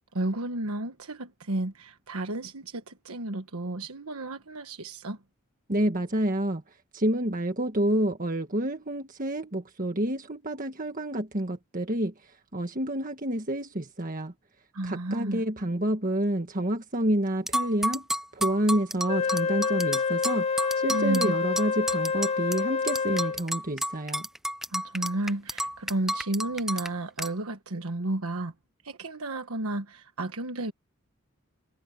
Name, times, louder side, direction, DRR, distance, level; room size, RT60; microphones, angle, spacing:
voice 1, 0.1-5.2 14.7-15.4 20.9-21.3 24.7-28.5 28.8-30.7, right 2 dB, 85° right, 1.4 m, -32 dB
voice 2, 5.7-6.6 6.9-14.3 14.8-18.0 18.3-20.4 20.7-24.3, right 1 dB, 40° right, 1.6 m, -28 dB
sound 1, 17.5-22.6 22.9-26.9 27.2-27.3, right 1 dB, ahead, 0.7 m, -31 dB
Wind instrument woodwind instrument, 19.1-23.5, left 5 dB, 30° left, 0.9 m, -27 dB
head